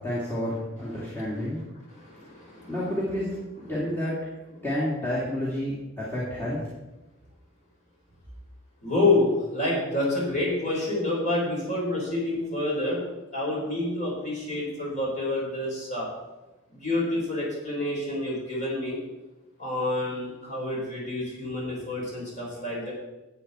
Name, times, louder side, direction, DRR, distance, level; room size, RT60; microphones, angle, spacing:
voice 1, 0.0-1.6 2.7-3.3 3.6-4.2 4.6-6.7, left 1 dB, 10° left, -9 dB, 2.2 m, -30 dB
voice 2, 1.9-2.8 8.8-13.0 13.3-16.1 16.7-19.0 19.6-22.9, left 2 dB, 35° left, -4 dB, 4.3 m, -28 dB
11.5 x 8.7 x 4.2 m, 1.1 s
head